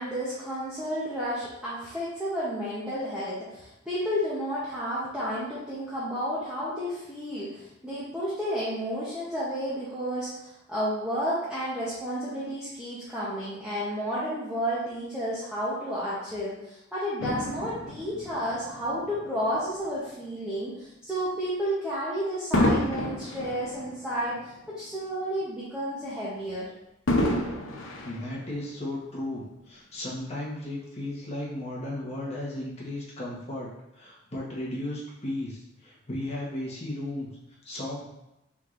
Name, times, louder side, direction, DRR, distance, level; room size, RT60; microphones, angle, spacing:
voice 1, 0.0-26.7, equal, 5° right, -10 dB, 0.8 m, -31 dB
Fireworks, 17.2-19.8 20.4-20.6 22.5-25.0 25.4-25.5 27.1-28.9 29.7-29.8, left 1 dB, 90° left, 0.6 m, -30 dB
voice 2, 28.0-37.3 37.6-38.1, left 1 dB, 30° left, -5 dB, 1.1 m, -35 dB
4.5 x 3.6 x 2.5 m, 0.90 s
head